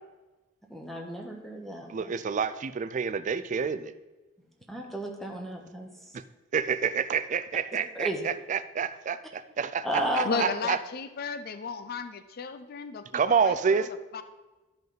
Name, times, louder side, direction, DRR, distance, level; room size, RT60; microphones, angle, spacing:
voice 1, 0.7-2.1 4.7-5.9 7.9-8.2 9.8-10.5, equal, ahead, 1 dB, 1.0 m, -33 dB
voice 2, 1.9-3.9 6.1-6.2 6.5-10.8 13.1-13.9, right 6 dB, 40° right, 13 dB, 0.4 m, -28 dB
voice 3, 10.2-14.2, left 4 dB, 50° left, 11 dB, 0.5 m, -35 dB
12.5 x 5.3 x 3.9 m, 1.2 s
head